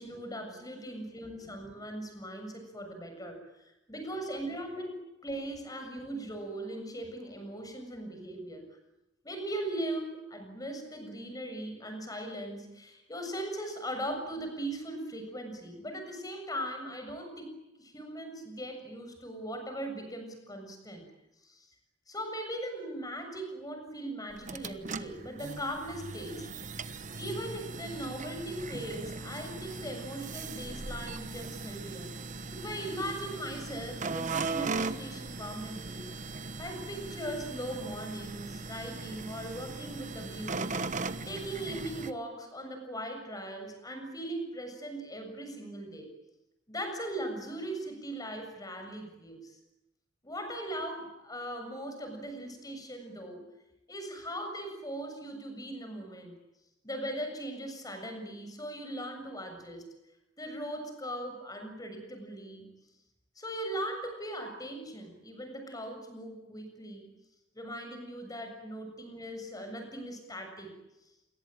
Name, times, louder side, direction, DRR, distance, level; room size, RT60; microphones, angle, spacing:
voice 1, 0.0-8.6 9.2-21.1 21.4-21.7 22.1-26.5 27.1-32.1 32.5-36.1 36.6-40.8 41.3-46.1 46.7-49.6 50.2-53.5 53.9-56.4 56.8-59.9 60.4-62.7 63.4-67.1 67.6-70.7, right 1 dB, 20° left, 6 dB, 7.2 m, -39 dB
sound 1, 24.3-42.1, right 3 dB, 40° right, 1.3 m, -39 dB
28.0 x 22.5 x 9.0 m, 0.95 s
head